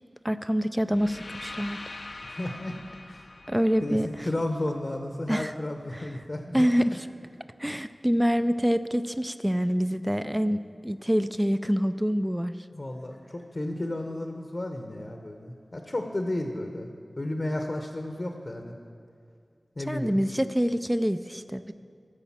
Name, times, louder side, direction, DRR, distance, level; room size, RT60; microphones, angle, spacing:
voice 1, 0.2-1.8 3.5-4.3 5.3-5.5 5.9-6.1 6.5-7.0 7.6-12.5 19.9-21.7, equal, 10° right, 11 dB, 0.4 m, -26 dB
sound 1, 0.9-4.9, left 2 dB, 75° left, 0.6 m, -43 dB
voice 2, 2.2-2.8 3.1-3.3 3.8-4.0 4.2-6.7 12.7-16.9 17.2-18.7 19.8-20.2, left 1 dB, 45° left, 4 dB, 0.8 m, -33 dB
14.0 x 5.0 x 7.3 m, 2.3 s
wide cardioid pair, 60°, 0 cm